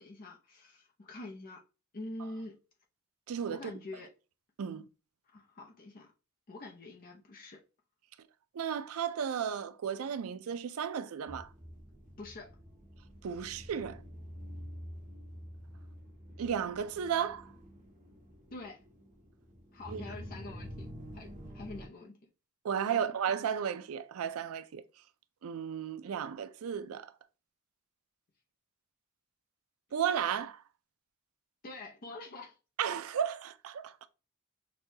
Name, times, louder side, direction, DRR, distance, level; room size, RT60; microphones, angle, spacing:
voice 1, 0.0-1.6 1.9-2.6 3.5-4.1 5.3-6.1 6.5-7.6 12.2-12.5 18.5-18.8 19.7-20.9 21.1-22.1 22.9-23.2 31.6-32.6, left 2 dB, 40° left, 0.6 m, -45 dB
voice 2, 3.3-3.7 4.6-4.8 8.5-11.5 13.2-14.0 16.4-17.5 19.9-20.0 22.6-24.8 25.4-27.1 29.9-30.6 32.8-34.1, right 8 dB, 70° right, 0.4 m, -34 dB
sound 1, 11.3-21.9, equal, 35° right, 1.4 m, -48 dB
6.1 x 2.2 x 2.7 m
head